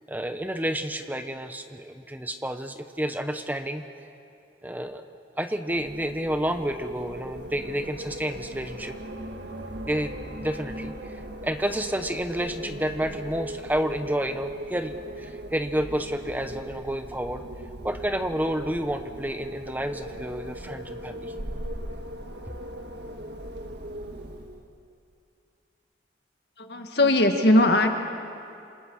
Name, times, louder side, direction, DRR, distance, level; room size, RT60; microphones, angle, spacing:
voice 1, 0.1-3.8 4.6-5.0 5.4-8.9 9.9-17.4 17.8-21.3, equal, 10° right, 7 dB, 0.9 m, -30 dB
Wind, 5.7-24.7, right 1 dB, 65° right, 1.8 m, -39 dB
voice 2, 26.6-27.9, left 1 dB, 60° left, 4 dB, 2.1 m, -20 dB
28.0 x 27.0 x 6.4 m, 2.6 s
head